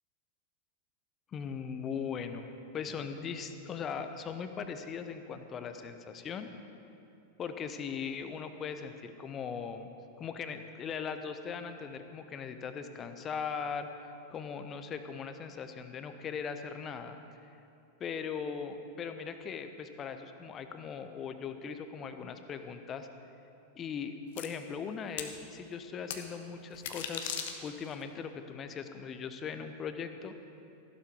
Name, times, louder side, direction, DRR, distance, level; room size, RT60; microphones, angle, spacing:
voice 1, 1.3-6.5 7.4-9.9 10.2-13.9 14.3-17.2 18.0-23.1 23.8-27.4 27.6-30.3, left 6 dB, 25° left, 8 dB, 1.0 m, -39 dB
sound 1, 24.4-24.5 25.2-25.3 26.1-26.2 26.7-27.9, left 8 dB, 55° left, 1.1 m, -37 dB
15.5 x 11.5 x 5.3 m, 2.7 s
figure-of-eight pair, 90°, 0 cm